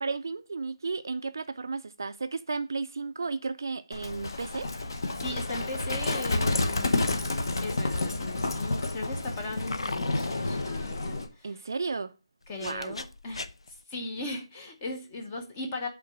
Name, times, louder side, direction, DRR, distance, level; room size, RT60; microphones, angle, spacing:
voice 1, 0.0-4.7 11.4-12.1 12.6-13.0, right 4 dB, 40° right, 0.4 m, -33 dB
Livestock farm animals working animals, 3.9-11.3, left 2 dB, 45° left, 1.1 m, -30 dB
voice 2, 5.2-7.3 7.6-11.5 12.5-13.5 13.9-15.9, left 2 dB, 10° left, 0.6 m, -38 dB
sound 1, 9.4-10.6 12.4-13.8, left 3 dB, 85° left, 0.7 m, -38 dB
8.5 x 3.7 x 6.1 m
hypercardioid pair, 180°, 3 cm